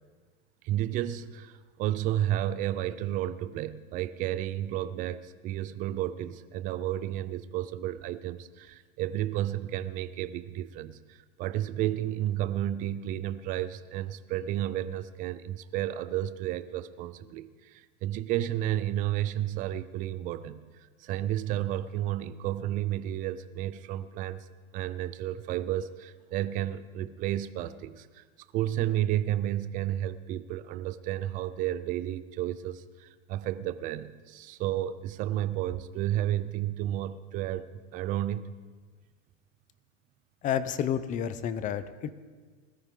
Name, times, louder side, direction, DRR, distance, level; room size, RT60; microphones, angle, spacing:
voice 1, 0.6-20.6 21.0-24.5 24.7-28.2 28.5-38.5, right 12 dB, 20° right, 14 dB, 0.4 m, -32 dB
voice 2, 40.4-42.1, left 9 dB, 20° left, 14 dB, 0.6 m, -30 dB
20.5 x 13.5 x 3.7 m, 1.5 s
supercardioid pair, 140°, 38 cm